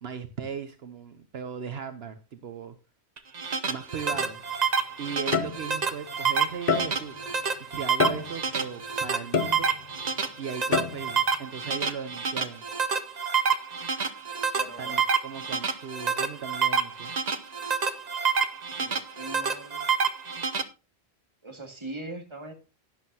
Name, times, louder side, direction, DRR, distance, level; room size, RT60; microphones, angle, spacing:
voice 1, 0.0-2.8 3.6-4.4 5.0-7.2 7.6-9.7 10.4-12.6 14.8-17.1, right 6 dB, 70° right, 9 dB, 1.1 m, -37 dB
sound 1, 3.2-20.6, right 6 dB, 40° right, 0.9 m, -28 dB
sound 2, 4.1-4.3 5.3-5.9 6.7-7.2 8.0-8.6 9.3-10.0 10.7-11.2, left 5 dB, 50° left, 0.9 m, -28 dB
voice 2, 14.5-15.0 18.7-19.9 21.4-22.5, right 2 dB, 25° right, 3 dB, 2.1 m, -41 dB
11.5 x 11.0 x 2.8 m, 0.30 s
omnidirectional pair, 1.1 m